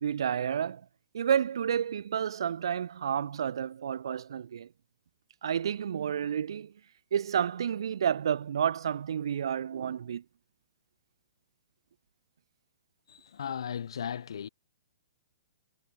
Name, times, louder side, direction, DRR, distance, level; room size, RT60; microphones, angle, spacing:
voice 1, 0.0-0.8 1.1-4.7 5.4-6.7 7.1-10.2, right 8 dB, 60° right, 0.5 m, -30 dB
voice 2, 13.1-14.5, left 8 dB, 65° left, 1.1 m, -36 dB
hypercardioid pair, 175°, 3 cm